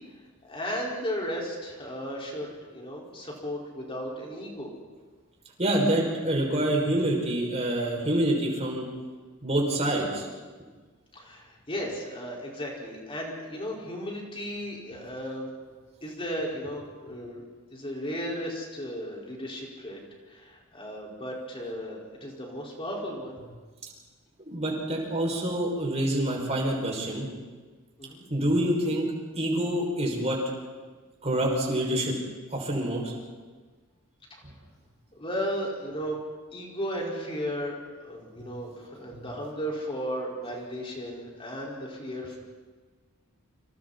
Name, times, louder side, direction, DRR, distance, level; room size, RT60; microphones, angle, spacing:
voice 1, 0.4-4.7 11.1-15.5 16.0-17.4 17.7-20.0 20.3-23.4 28.0-28.2 35.1-36.2 36.5-42.4, equal, 25° left, -3 dB, 5.2 m, -35 dB
voice 2, 5.6-8.9 9.4-10.3 24.5-27.3 28.3-29.1 29.3-30.4 31.2-32.2 32.5-33.1 38.4-38.5 39.1-39.2, right 1 dB, 30° right, -2 dB, 6.5 m, -26 dB
29.5 x 27.0 x 4.4 m, 1.4 s
head